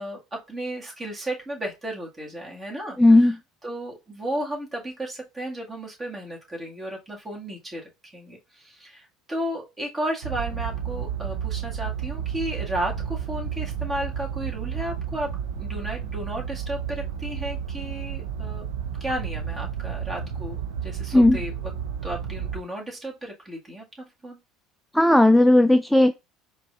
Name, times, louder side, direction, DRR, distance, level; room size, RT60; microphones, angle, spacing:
voice 1, 0.0-3.4 3.6-18.7 19.0-21.7 22.0-24.4, right 1 dB, 25° right, 1.9 m, -34 dB
voice 2, 3.0-3.3 21.1-21.4 24.9-26.1, left 1 dB, ahead, 0.3 m, -15 dB
sound 1, 10.2-22.6, right 8 dB, 85° right, 0.6 m, -32 dB
4.6 x 3.0 x 2.5 m
hypercardioid pair, 80°, 0 cm